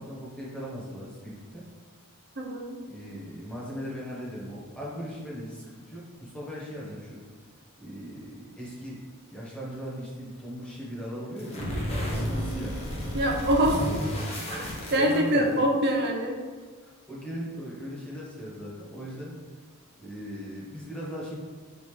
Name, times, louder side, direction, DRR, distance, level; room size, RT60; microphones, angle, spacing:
voice 1, 0.0-1.7 2.9-7.2 7.8-9.0 9.3-11.8 12.4-12.8 14.9-15.7 16.8-19.4 20.0-21.3, equal, 5° left, -7 dB, 1.2 m, -38 dB
voice 2, 2.4-2.8 13.1-13.8 14.5-14.6 14.9-16.3, equal, 50° right, 1 dB, 0.7 m, -24 dB
sound 1, 11.4-15.6, equal, 30° left, 0.8 m, -32 dB
5.4 x 2.5 x 3.2 m, 1.4 s
head